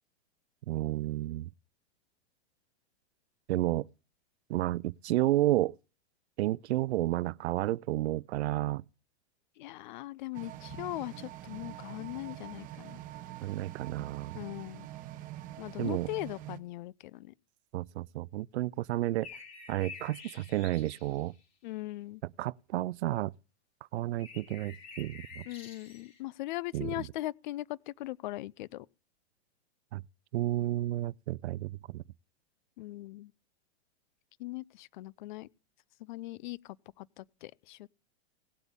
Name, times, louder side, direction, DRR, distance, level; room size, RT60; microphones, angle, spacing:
voice 1, 0.7-1.5 3.5-3.9 4.5-5.8 6.4-8.8 13.4-14.4 15.8-16.1 17.7-19.3 19.7-21.3 22.4-23.3 23.9-25.4 26.7-27.1 29.9-30.0 30.3-32.0, right 15 dB, 80° right, 0.5 m, -31 dB
voice 2, 9.6-13.0 14.3-14.9 15.6-17.3 21.6-22.2 25.5-28.9 32.8-33.3 34.4-35.5 36.0-37.9, left 18 dB, 45° left, 0.5 m, -40 dB
sound 1, 10.3-16.6, right 14 dB, 25° right, 0.8 m, -45 dB
sound 2, 19.2-21.4 24.2-26.2, left 5 dB, 25° left, 4.0 m, -49 dB
18.0 x 8.0 x 3.6 m
hypercardioid pair, 145°, 33 cm